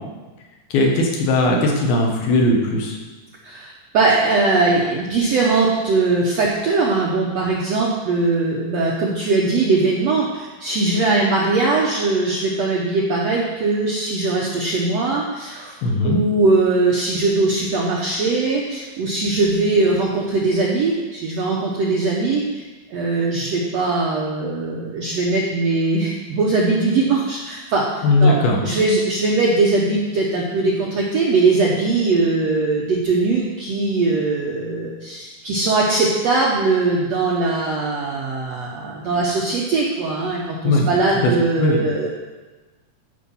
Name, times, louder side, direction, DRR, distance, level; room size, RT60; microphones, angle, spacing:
voice 1, 0.7-3.0 15.8-16.2 28.0-28.6 40.6-40.9 41.2-41.3 41.6-41.8, left 2 dB, 80° left, 0 dB, 3.4 m, -18 dB
voice 2, 3.4-15.7 16.0-22.6 22.9-42.1, right 3 dB, 75° right, -3 dB, 1.5 m, -20 dB
13.5 x 5.2 x 5.6 m, 1.2 s
omnidirectional pair, 4.4 m